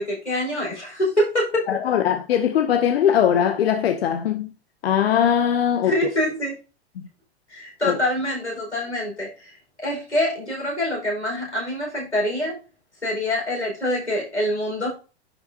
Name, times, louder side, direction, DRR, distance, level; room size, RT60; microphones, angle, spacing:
voice 1, 0.0-1.7 5.8-6.5 7.5-9.5 9.8-12.6 13.0-14.9, left 1 dB, 90° left, 5.0 m, -25 dB
voice 2, 1.7-4.5 4.8-5.9 7.0-7.1 7.8-8.0, left 9 dB, 60° left, 0.9 m, -20 dB
10.5 x 5.7 x 2.8 m
figure-of-eight pair, 90°, 33 cm